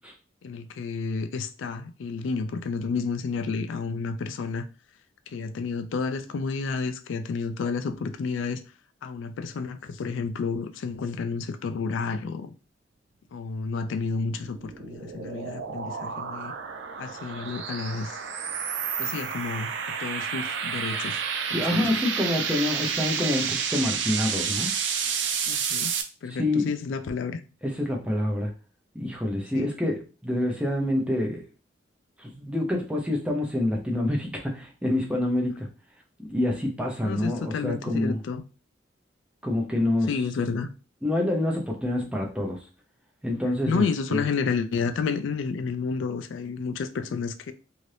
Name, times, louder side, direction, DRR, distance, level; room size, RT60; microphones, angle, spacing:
voice 1, 0.4-4.7 5.3-8.6 9.0-12.5 13.3-16.5 17.0-18.2 19.0-19.7 20.0-21.2 21.5-21.9 25.5-25.9 26.2-27.4 29.5-29.7 37.0-38.4 40.1-40.7 43.7-47.5, left 5 dB, 80° left, 0.3 m, -30 dB
sound 1, 14.3-26.0, right 6 dB, 70° right, 0.4 m, -30 dB
voice 2, 21.5-24.7 26.3-26.7 27.6-28.5 28.9-31.4 32.2-35.7 36.2-38.2 39.4-40.1 41.0-42.6 43.2-43.8 44.1-44.2, left 1 dB, 5° right, 0.6 m, -27 dB
2.8 x 2.5 x 3.2 m
head